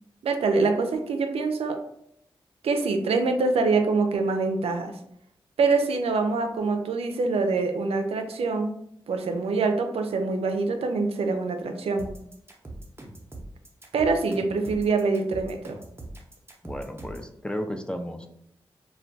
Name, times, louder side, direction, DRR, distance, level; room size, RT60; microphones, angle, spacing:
voice 1, 0.2-1.8 2.6-4.9 5.6-8.7 9.1-12.1 13.9-15.8, right 4 dB, 85° right, 5 dB, 0.4 m, -25 dB
sound 1, 12.0-17.3, right 2 dB, 25° right, 0.7 m, -41 dB
voice 2, 16.6-18.3, equal, 10° left, 5 dB, 0.4 m, -33 dB
2.2 x 2.2 x 3.9 m, 0.73 s
cardioid pair, 50°, 10 cm